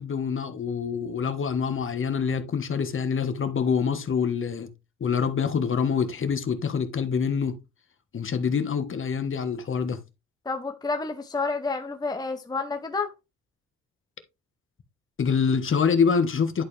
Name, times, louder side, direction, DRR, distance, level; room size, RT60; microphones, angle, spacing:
voice 1, 0.0-4.7 5.0-7.6 8.1-10.0 15.2-16.6, left 6 dB, 40° left, 1.3 m, -25 dB
voice 2, 10.5-13.1, left 4 dB, 15° left, 0.8 m, -29 dB
11.0 x 4.3 x 3.3 m
cardioid pair, 90°, 30 cm